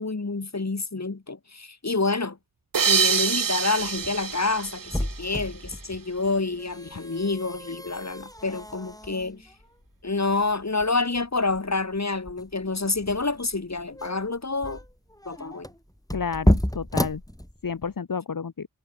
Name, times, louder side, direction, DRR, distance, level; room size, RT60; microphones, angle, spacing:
voice 1, 0.0-2.4 2.9-9.4 10.0-14.8 15.3-15.7, left 3 dB, 50° left, 4.0 m, -28 dB
sound 1, 2.7-5.8, right 6 dB, 70° right, 1.1 m, -26 dB
sound 2, 3.8-18.0, left 1 dB, 10° left, 7.5 m, -32 dB
voice 2, 16.1-17.2 17.6-18.7, left 6 dB, 70° left, 1.5 m, -30 dB
cardioid pair, 40°, 35 cm